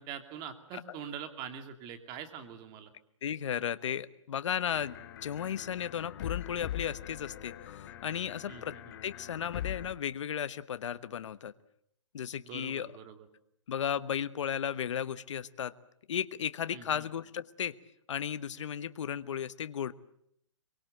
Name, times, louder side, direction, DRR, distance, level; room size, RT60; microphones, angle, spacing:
voice 1, 0.0-2.9 8.5-8.9 12.4-13.3 16.7-17.1, right 8 dB, 25° right, 8 dB, 2.7 m, -44 dB
voice 2, 3.2-5.0 5.2-8.8 9.0-11.5 12.1-12.9 13.7-15.7 16.1-17.8 18.1-19.9, left 9 dB, 70° left, 14 dB, 1.2 m, -35 dB
sound 1, 4.7-10.0, left 12 dB, 45° left, 2.0 m, -42 dB
25.0 x 23.5 x 7.9 m, 0.72 s
hypercardioid pair, 150°, 16 cm